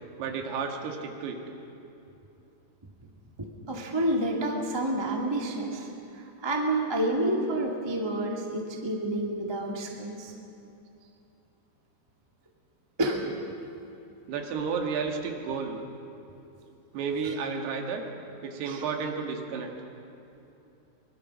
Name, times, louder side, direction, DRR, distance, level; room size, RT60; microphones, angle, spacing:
voice 1, 0.2-1.4 14.3-15.8 16.9-18.1 18.4-19.7, right 5 dB, 80° right, 3 dB, 3.8 m, -32 dB
voice 2, 3.4-10.3 13.0-13.2 17.2-17.3 18.7-18.8, right 1 dB, 15° right, 0 dB, 0.8 m, -29 dB
23.5 x 22.0 x 6.3 m, 2.8 s
omnidirectional pair, 4.7 m